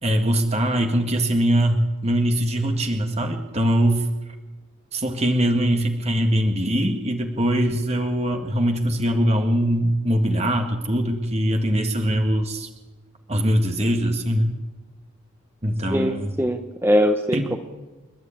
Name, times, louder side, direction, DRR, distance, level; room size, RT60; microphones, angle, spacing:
voice 1, 0.0-4.0 4.9-12.7 13.3-14.5 15.6-16.2 17.3-17.6, equal, 30° right, 4 dB, 1.7 m, -22 dB
voice 2, 15.9-17.6, equal, 10° right, 6 dB, 1.0 m, -21 dB
30.0 x 11.0 x 8.9 m, 1.2 s
head